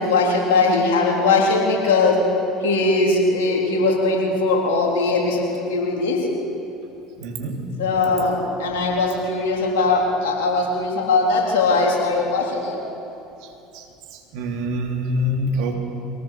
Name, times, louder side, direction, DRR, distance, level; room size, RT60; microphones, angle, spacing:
voice 1, 0.0-2.2 2.6-6.2 7.8-12.8, left 3 dB, 75° left, -2 dB, 3.7 m, -20 dB
voice 2, 7.2-7.6 13.7-13.8 14.1-15.7, equal, 65° right, 2 dB, 3.0 m, -25 dB
23.0 x 18.0 x 6.7 m, 2.9 s
hypercardioid pair, 70°, 0 cm